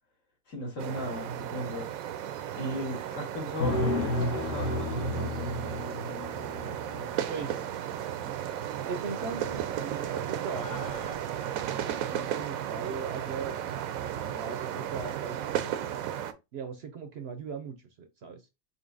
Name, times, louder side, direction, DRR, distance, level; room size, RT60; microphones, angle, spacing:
voice 1, 0.5-1.9 2.5-5.4, left 1 dB, 65° left, 2.1 m, -36 dB
sound 1, 0.8-16.3, right 10 dB, 80° right, 1.0 m, -34 dB
sound 2, 3.6-7.5 9.3-9.8 10.2-10.3 10.5-11.1, left 1 dB, 40° left, 1.0 m, -32 dB
voice 2, 7.3-7.8 8.9-10.8 11.3-16.0 16.5-18.5, right 5 dB, 60° right, 0.7 m, -39 dB
5.3 x 2.9 x 2.5 m
omnidirectional pair, 1.4 m